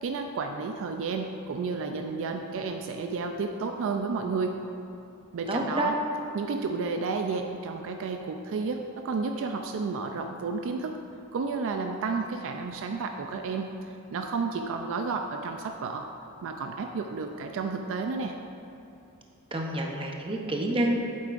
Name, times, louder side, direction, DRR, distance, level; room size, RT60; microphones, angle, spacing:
voice 1, 0.0-4.6 5.3-6.0 6.3-11.0 11.3-16.1 16.4-18.3, right 4 dB, 60° right, 5 dB, 0.4 m, -31 dB
voice 2, 5.5-5.9 19.5-21.0, right 1 dB, 25° right, 0 dB, 0.7 m, -28 dB
8.4 x 8.0 x 2.5 m, 2.8 s
head